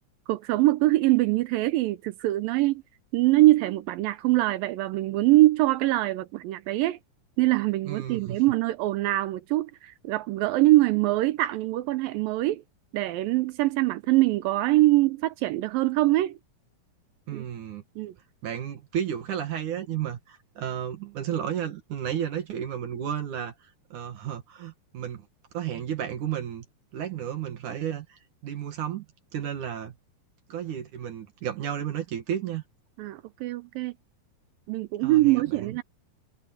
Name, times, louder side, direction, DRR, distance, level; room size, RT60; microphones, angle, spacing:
voice 1, 0.3-2.8 3.1-7.0 7.4-12.6 12.9-16.4 17.3-17.4 18.0-18.1 33.0-33.9 34.7-35.8, right 18 dB, 75° right, 2.2 m, -23 dB
voice 2, 7.9-8.4 17.3-17.8 18.4-25.3 25.5-26.7 26.9-29.1 29.3-30.0 30.5-32.6 35.0-35.8, right 9 dB, 60° right, 2.8 m, -33 dB
omnidirectional pair, 4.5 m